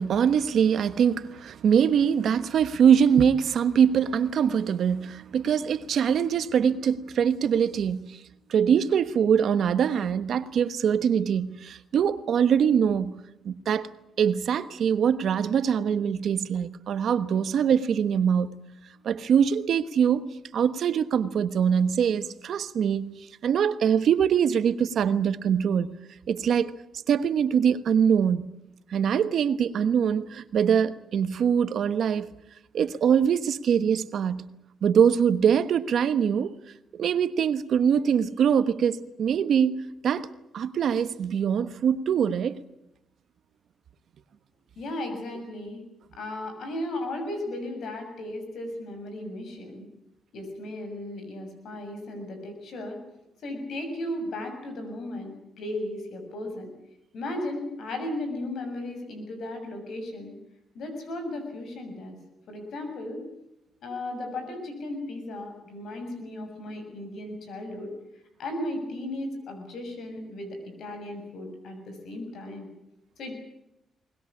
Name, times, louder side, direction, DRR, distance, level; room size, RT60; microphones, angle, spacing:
voice 1, 0.0-8.2 8.5-13.9 14.2-18.6 19.0-20.3 20.5-25.9 26.3-26.7 27.1-28.5 28.9-32.3 32.7-34.5 34.8-36.6 36.9-40.3 40.5-42.6, right 7 dB, 70° right, 1.2 m, -23 dB
voice 2, 44.8-45.8 46.1-49.9 50.3-53.0 53.4-56.7 57.1-60.3 60.8-62.2 62.5-63.2 63.8-67.9 68.4-72.7 73.2-73.3, left 1 dB, 75° left, 7.0 m, -35 dB
22.5 x 20.0 x 8.6 m
cardioid pair, 85°, 0 cm